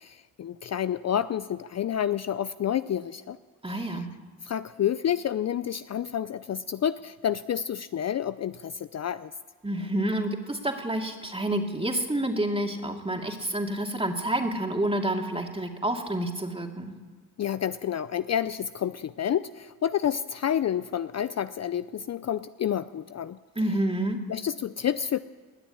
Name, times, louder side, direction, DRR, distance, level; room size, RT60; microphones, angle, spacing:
voice 1, 0.0-3.4 3.7-4.0 4.4-9.3 17.4-23.4 24.3-25.2, left 9 dB, 45° left, 14 dB, 0.5 m, -29 dB
voice 2, 3.6-4.1 9.6-16.9 23.6-24.2, right 1 dB, 15° right, 3 dB, 2.5 m, -28 dB
20.0 x 7.0 x 9.9 m, 1.4 s
supercardioid pair, 55°, 36 cm